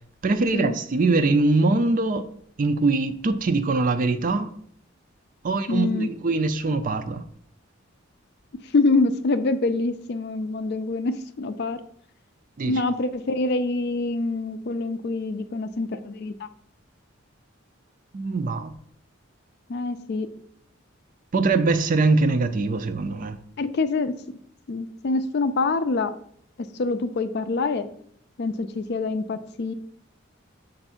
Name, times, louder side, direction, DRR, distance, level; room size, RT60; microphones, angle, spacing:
voice 1, 0.2-2.3 2.6-4.5 5.4-7.2 12.6-12.8 18.1-18.7 21.3-23.4, right 3 dB, 40° right, 0.4 m, -22 dB
voice 2, 5.7-6.1 8.7-11.8 12.7-16.5 19.7-20.3 23.6-24.1 24.7-26.1 26.6-27.9 28.4-29.7, left 3 dB, 55° left, 0.4 m, -25 dB
6.8 x 2.6 x 5.6 m
head